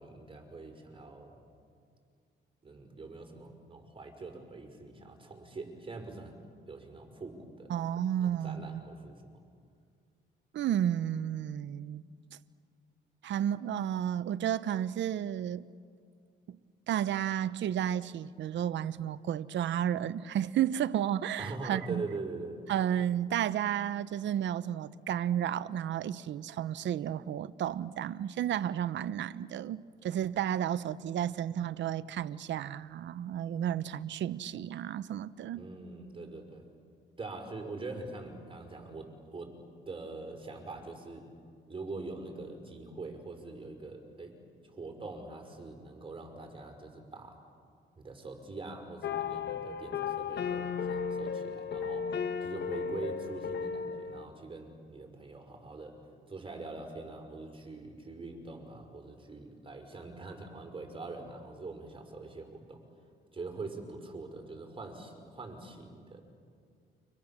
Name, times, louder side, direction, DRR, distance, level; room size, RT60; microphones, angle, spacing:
voice 1, 0.0-1.4 2.6-7.7 8.2-9.2 21.4-22.6 35.5-36.6 37.2-39.5 39.9-41.3 41.7-44.4 44.6-47.4 48.0-52.1 52.4-56.0 56.3-62.8 63.3-66.2, right 3 dB, 25° right, 5.5 m, -43 dB
voice 2, 7.7-8.8 10.5-12.0 13.2-15.7 16.5-16.6 16.9-22.1 22.7-35.6, right 10 dB, 65° right, 0.8 m, -32 dB
sound 1, 49.0-54.3, left 6 dB, 60° left, 1.5 m, -35 dB
30.0 x 25.5 x 7.4 m
cardioid pair, 90°, 20 cm